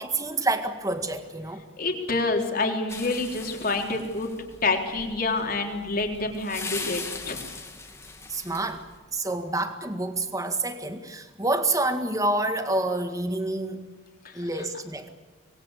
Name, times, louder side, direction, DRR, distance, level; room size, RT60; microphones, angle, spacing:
voice 1, 0.0-1.6 8.3-8.8 9.1-13.9 14.3-15.1, right 2 dB, 15° right, 8 dB, 1.8 m, -28 dB
voice 2, 1.8-4.3 4.6-7.4 14.2-14.3, left 3 dB, 45° left, 3 dB, 3.8 m, -27 dB
sound 1, 2.9-8.9, left 4 dB, 15° left, 2.5 m, -39 dB
26.0 x 21.0 x 8.3 m, 1.5 s
head